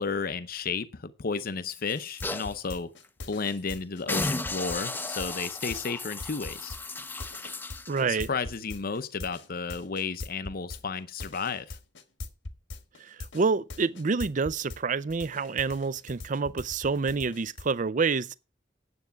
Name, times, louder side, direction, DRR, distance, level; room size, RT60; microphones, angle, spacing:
voice 1, 0.0-2.9 3.3-6.7 8.1-11.8, left 5 dB, 55° left, 0.7 m, -33 dB
sound 1, 1.7-2.6 3.0-3.1 3.5-3.7 4.1-8.0 8.5-8.6, left 2 dB, 10° left, 0.5 m, -35 dB
sound 2, 1.9-14.8 15.1-17.7, left 2 dB, 70° left, 1.4 m, -41 dB
voice 2, 7.9-8.3 13.0-18.4, right 4 dB, 45° right, 0.5 m, -28 dB
9.6 x 7.9 x 5.8 m
head